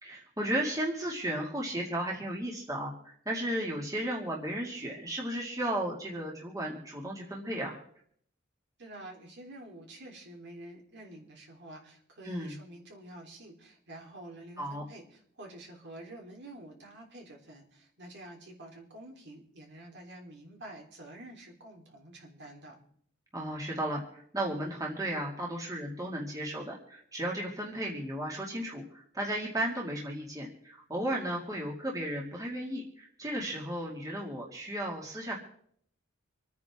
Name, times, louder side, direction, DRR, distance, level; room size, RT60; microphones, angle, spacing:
voice 1, 0.0-7.8 12.2-12.5 14.6-14.8 23.3-35.4, right 1 dB, 15° right, -2 dB, 2.4 m, -34 dB
voice 2, 8.8-22.8, right 1 dB, 60° right, 0 dB, 3.8 m, -48 dB
27.0 x 9.6 x 3.7 m, 0.65 s
head